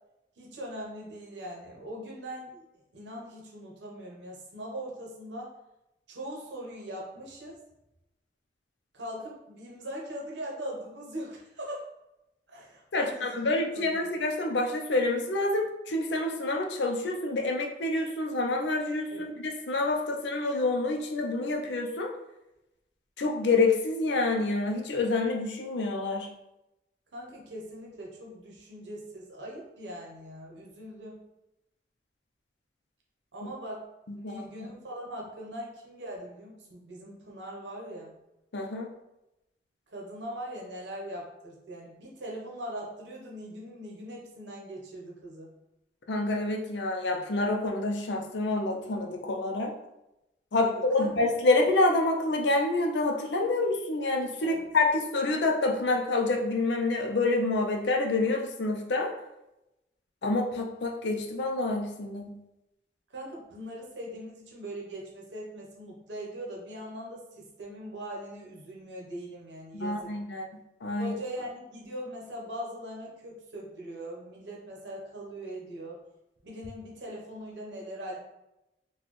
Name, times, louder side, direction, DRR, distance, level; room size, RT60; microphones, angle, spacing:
voice 1, 0.4-5.5 6.1-7.6 8.9-11.9 12.5-14.1 19.1-19.3 27.1-31.2 33.3-33.9 34.2-38.1 39.9-45.5 50.6-51.1 54.4-54.7 63.1-70.1 71.0-76.0 76.4-78.2, equal, 85° right, -2 dB, 0.9 m, -41 dB
voice 2, 12.9-22.1 23.2-26.3 33.4-33.5 34.1-34.3 38.5-38.9 46.1-49.7 50.5-59.1 60.2-62.4 69.7-70.5 70.8-71.1, left 2 dB, 80° left, 3 dB, 0.5 m, -27 dB
4.1 x 2.3 x 3.1 m, 0.91 s
head